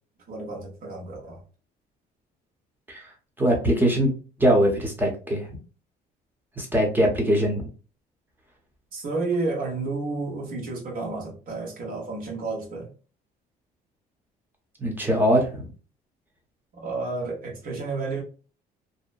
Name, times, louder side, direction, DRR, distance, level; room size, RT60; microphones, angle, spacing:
voice 1, 0.3-1.4 8.9-12.9 16.8-18.2, right 3 dB, 55° right, 1.3 m, -31 dB
voice 2, 3.4-4.1 4.4-5.5 6.6-7.7 14.8-15.7, equal, 10° right, 0.9 m, -22 dB
2.8 x 2.1 x 2.5 m
cardioid pair, 110°, 17 cm